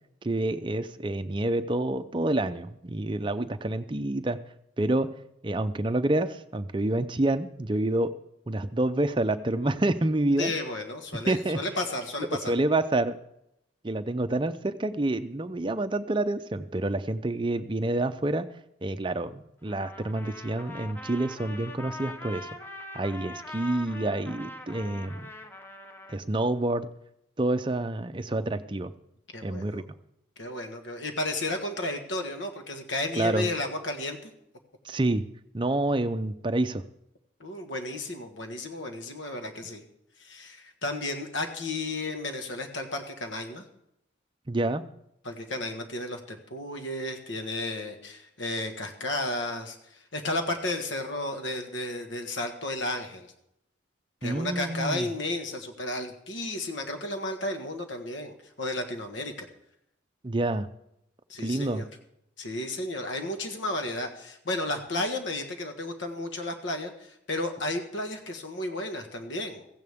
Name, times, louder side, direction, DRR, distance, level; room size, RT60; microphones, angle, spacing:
voice 1, 0.2-4.4 4.8-5.1 5.4-8.1 8.5-10.5 11.3-11.6 12.5-13.2 13.8-18.5 18.8-22.5 22.9-25.3 26.1-26.9 27.4-28.9 29.4-29.8 33.2-33.5 34.8-35.3 35.5-36.8 44.5-44.8 54.2-55.1 60.2-60.7 61.4-61.8, right 2 dB, 25° right, 9 dB, 0.5 m, -28 dB
voice 2, 10.4-12.5 29.3-29.8 30.4-34.3 37.4-39.8 40.2-43.6 45.2-53.3 54.2-59.5 61.3-61.9 62.4-69.8, left 2 dB, 75° left, 5 dB, 1.6 m, -33 dB
Trumpet, 19.7-26.2, left 2 dB, 10° left, 0.9 m, -42 dB
16.0 x 15.0 x 3.6 m, 0.80 s
head